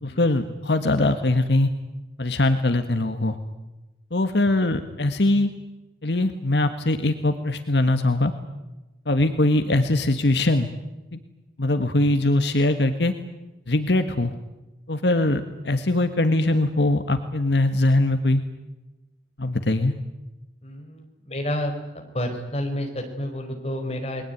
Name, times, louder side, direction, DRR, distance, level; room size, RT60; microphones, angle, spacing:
voice 1, 0.0-1.7 2.2-3.4 4.1-5.5 6.0-8.3 9.0-10.7 11.1-11.2 11.6-13.1 13.7-14.3 14.9-18.4 19.4-19.9, left 2 dB, 75° left, 8 dB, 1.7 m, -21 dB
voice 2, 20.6-21.7 22.1-24.2, left 1 dB, 35° left, 3 dB, 4.9 m, -30 dB
30.0 x 21.5 x 9.4 m, 1.0 s
head